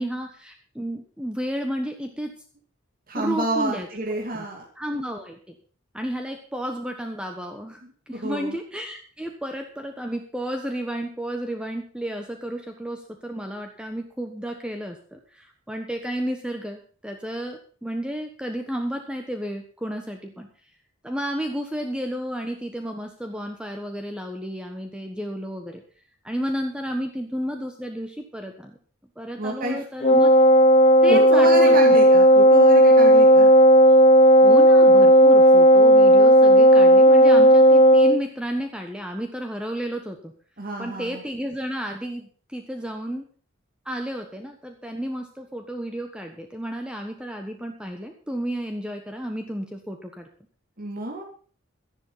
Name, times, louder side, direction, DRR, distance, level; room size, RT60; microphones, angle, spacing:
voice 1, 0.0-2.3 3.1-3.9 4.3-4.4 4.8-5.5 5.9-7.8 8.1-20.5 21.0-25.8 26.2-28.8 29.2-30.3 31.0-31.8 34.4-40.3 40.8-43.2 43.8-50.3, equal, 5° right, 4 dB, 1.3 m, -32 dB
voice 2, 3.1-4.7 8.1-8.6 29.4-29.8 31.1-33.5 40.6-41.2 50.8-51.2, right 1 dB, 45° right, 0 dB, 2.6 m, -28 dB
Wind instrument woodwind instrument, 30.0-38.2, equal, 35° left, 0.5 m, -13 dB
13.0 x 11.0 x 5.6 m, 0.42 s
head